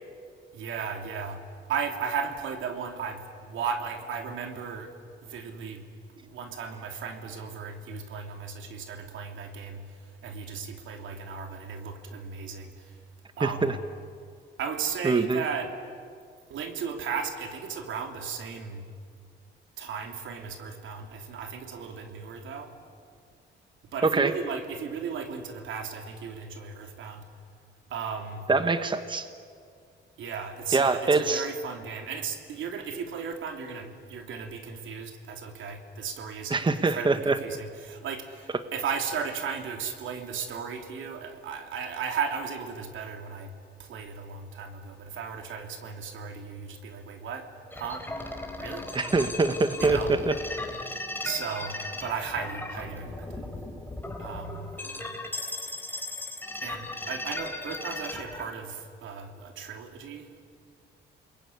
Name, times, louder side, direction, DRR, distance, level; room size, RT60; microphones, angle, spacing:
voice 1, 0.5-1.4 1.7-4.9 5.2-5.8 6.2-9.8 10.2-12.9 13.4-13.7 14.6-15.7 16.5-18.9 19.8-22.7 23.9-27.3 27.9-28.5 30.2-43.5 43.8-47.5 47.7-48.0 48.6-48.9 49.8-50.1 51.2-53.5 54.2-54.7 56.6-60.4, right 6 dB, 75° right, 5 dB, 3.2 m, -35 dB
voice 2, 13.4-13.7 15.0-15.4 24.0-24.3 28.5-29.3 30.7-31.5 36.5-37.4 48.9-50.3, right 3 dB, 25° right, 10 dB, 1.3 m, -24 dB
sound 1, 47.7-58.5, left 2 dB, 10° left, 4.0 m, -37 dB
28.5 x 21.5 x 9.7 m, 2.2 s
cardioid pair, 90°, 20 cm